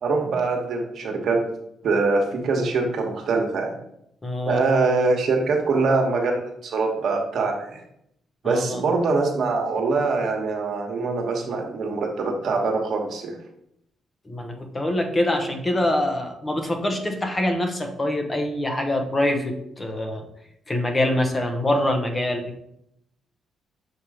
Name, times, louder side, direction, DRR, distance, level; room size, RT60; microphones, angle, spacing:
voice 1, 0.0-1.5 1.8-3.7 4.4-7.8 8.4-13.4, right 3 dB, 60° right, 2 dB, 1.2 m, -23 dB
voice 2, 4.2-4.6 8.4-8.8 14.3-20.3 20.7-22.6, left 1 dB, 25° left, 4 dB, 0.9 m, -24 dB
6.5 x 2.9 x 4.9 m, 0.76 s
cardioid pair, 90°, 0 cm